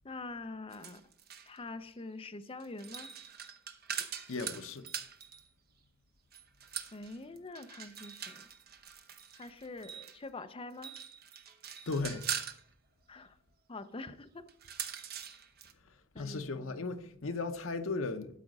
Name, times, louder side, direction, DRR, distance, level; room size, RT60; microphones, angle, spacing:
voice 1, 0.0-1.0 1.5-3.1 3.9-4.1 6.9-8.5 9.3-10.9 13.1-13.4 13.7-14.5 16.1-16.9, left 2 dB, 30° left, 0.6 m, -45 dB
sound 1, 0.7-1.6 2.6-5.5 6.3-10.2 10.7-12.6 14.5-15.7, right 8 dB, 50° right, 0.9 m, -42 dB
voice 2, 4.3-4.9 11.9-12.2 16.2-18.4, left 3 dB, 80° left, 0.8 m, -36 dB
12.5 x 5.1 x 5.4 m
head